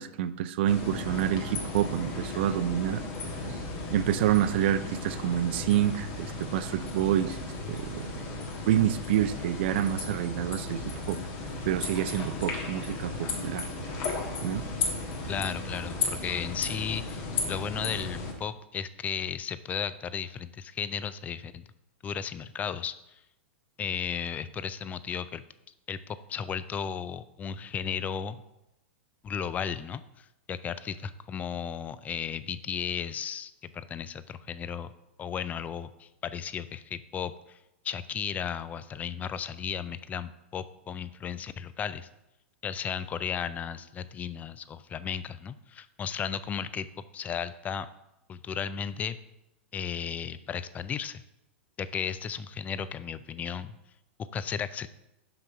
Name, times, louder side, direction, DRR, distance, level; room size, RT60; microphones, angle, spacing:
voice 1, 0.0-3.0 3.5-3.6 3.9-7.4 7.7-11.2 11.6-13.7 14.4-14.6, right 11 dB, 60° right, 13 dB, 0.4 m, -28 dB
sound 1, 0.7-18.3, left 3 dB, 50° left, 1.6 m, -35 dB
voice 2, 15.3-21.7 22.0-22.9 23.8-25.4 25.9-28.4 29.2-34.9 35.2-37.6 37.8-42.1 42.6-47.9 48.3-49.2 49.7-51.2 51.8-53.8 54.3-54.9, left 7 dB, 25° left, 15 dB, 0.4 m, -35 dB
5.8 x 5.3 x 4.9 m, 0.89 s
hypercardioid pair, 110°, 7 cm